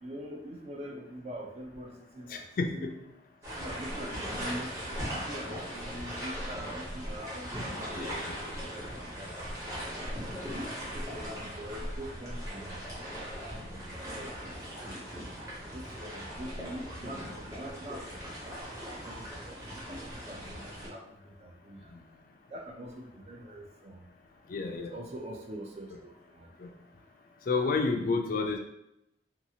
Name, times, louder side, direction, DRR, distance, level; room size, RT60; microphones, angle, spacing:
voice 1, 0.0-2.5 2.7-2.9 3.6-4.7 5.1-8.0 8.4-9.3 9.9-10.3 10.7-12.8 13.4-15.1 15.6-18.6 19.0-21.9 22.5-24.0 24.8-26.5, equal, 35° right, 1 dB, 0.4 m, -44 dB
voice 2, 2.3-2.9 7.9-8.3 21.9-22.0 24.5-24.9 26.6-26.7 27.5-28.6, left 4 dB, 50° left, 4 dB, 0.3 m, -30 dB
sound 1, 3.4-20.9, equal, 20° right, 0.8 m, -39 dB
2.7 x 2.3 x 2.7 m, 0.82 s
head